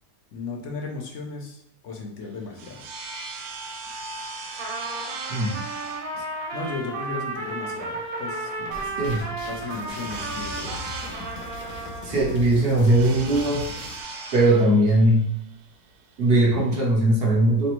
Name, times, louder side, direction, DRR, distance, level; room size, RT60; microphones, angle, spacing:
voice 1, 0.3-2.9 6.1-6.3 6.5-8.9 9.5-10.8, left 4 dB, 60° left, 1 dB, 1.0 m, -36 dB
sound 1, 2.2-16.8, right 4 dB, 85° right, 1.1 m, -39 dB
Trumpet, 4.6-12.4, right 2 dB, 65° right, 1.2 m, -33 dB
sound 2, 8.7-14.0, left 3 dB, 85° left, 1.2 m, -39 dB
voice 2, 12.0-13.7 14.3-15.3 16.2-17.7, right 1 dB, 50° right, -1 dB, 0.8 m, -19 dB
4.0 x 3.3 x 3.0 m, 0.72 s
omnidirectional pair, 1.6 m